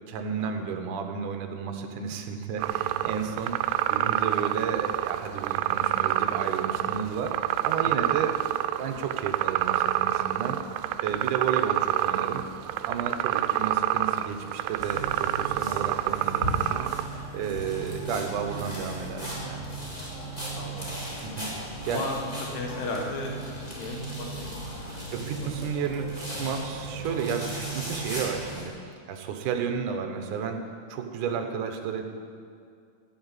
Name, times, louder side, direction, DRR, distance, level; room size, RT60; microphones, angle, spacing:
voice 1, 0.1-8.4 8.8-10.6 11.0-12.4 12.9-16.9 17.3-19.7 21.2-21.5 21.9-22.0 24.8-32.0, right 6 dB, 65° right, 5 dB, 2.2 m, -32 dB
sound 1, 2.6-17.1, right 13 dB, 85° right, 2.6 m, -27 dB
sound 2, 14.8-28.6, right 2 dB, 10° left, 3.5 m, -36 dB
voice 2, 20.5-21.4 21.9-25.5 31.2-31.4, left 2 dB, 90° left, 0 dB, 3.8 m, -37 dB
13.5 x 8.1 x 9.8 m, 2.3 s
omnidirectional pair, 4.5 m